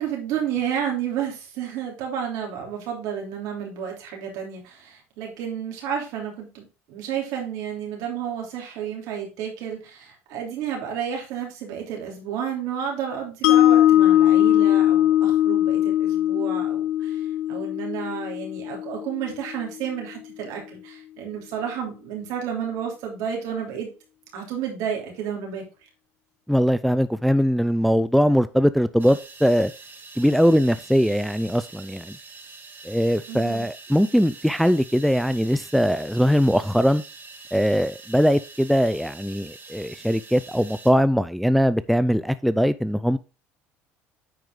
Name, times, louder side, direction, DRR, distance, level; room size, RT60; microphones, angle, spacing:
voice 1, 0.0-23.9 24.3-25.6 33.3-33.7, right 8 dB, 70° right, 3.3 m, -31 dB
Mallet percussion, 13.4-19.6, left 12 dB, 90° left, 0.7 m, -20 dB
voice 2, 26.5-29.7 30.2-32.2 32.8-37.0 37.5-43.2, equal, ahead, 0.4 m, -21 dB
sound 1, 29.0-40.9, right 4 dB, 35° right, 2.7 m, -45 dB
9.3 x 4.7 x 3.8 m
supercardioid pair, 90°, 6 cm